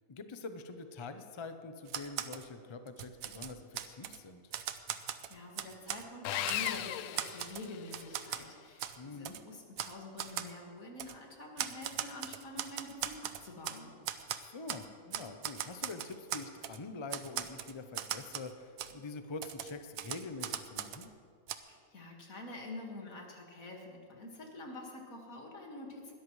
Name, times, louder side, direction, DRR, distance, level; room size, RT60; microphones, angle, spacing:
voice 1, 0.1-4.4 9.0-9.4 14.3-21.1, left 3 dB, 35° left, 8 dB, 0.5 m, -45 dB
Typewriter, 1.9-2.4 2.9-4.2 4.5-6.0 6.5-6.8 7.2-8.4 8.8-9.0 9.2-9.4 9.8-9.9 10.2-10.5 11.0-11.1 11.6-13.8 14.0-14.8 15.1-16.8 17.1-18.5 18.8-18.9 19.4-21.1 21.5-21.6, right 10 dB, 75° right, 1.1 m, -39 dB
voice 2, 5.0-13.9 21.7-26.1, left 2 dB, 70° left, 0 dB, 2.3 m, -47 dB
Sawing, 6.2-8.1, left 12 dB, 90° left, 1.1 m, -36 dB
20.5 x 13.0 x 3.2 m, 2.1 s
omnidirectional pair, 1.5 m